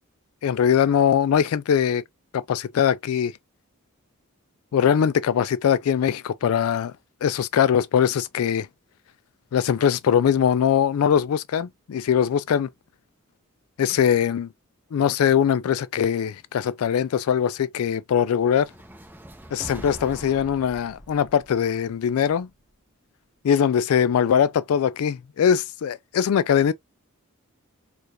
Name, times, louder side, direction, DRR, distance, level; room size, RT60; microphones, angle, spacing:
voice 1, 0.4-2.0 2.3-3.3 4.7-6.9 7.2-8.7 9.5-12.7 13.8-14.5 14.9-18.7 19.5-22.5 23.4-26.7, left 8 dB, 85° left, 0.3 m, -21 dB
sound 1, 18.5-22.8, right 1 dB, 10° right, 0.8 m, -43 dB
4.5 x 2.4 x 2.9 m
head